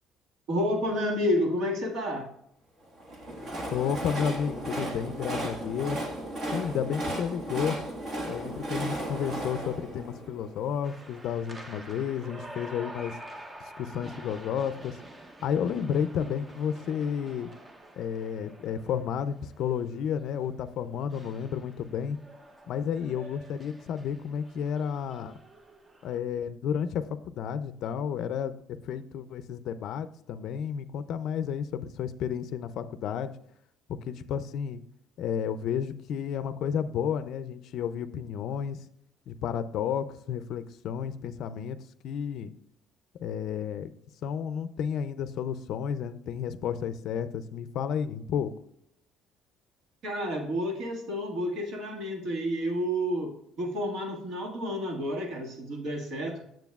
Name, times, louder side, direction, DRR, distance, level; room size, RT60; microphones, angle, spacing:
voice 1, 0.5-2.3 50.0-56.4, equal, 65° right, 2 dB, 1.7 m, -30 dB
Train, 2.9-11.1, right 1 dB, 40° right, 1.4 m, -35 dB
voice 2, 3.7-6.0 6.5-7.8 8.3-13.2 13.8-15.0 15.4-17.5 18.0-22.2 22.7-25.3 26.0-28.5 28.8-33.4 33.9-34.8 35.2-38.8 39.3-41.8 42.0-42.5 43.2-43.9 44.2-48.5, left 8 dB, 60° left, 13 dB, 0.4 m, -32 dB
sound 1, 10.8-26.2, right 1 dB, 15° right, 0.6 m, -48 dB
9.1 x 7.5 x 2.3 m, 0.73 s
cardioid pair, 145°, 0 cm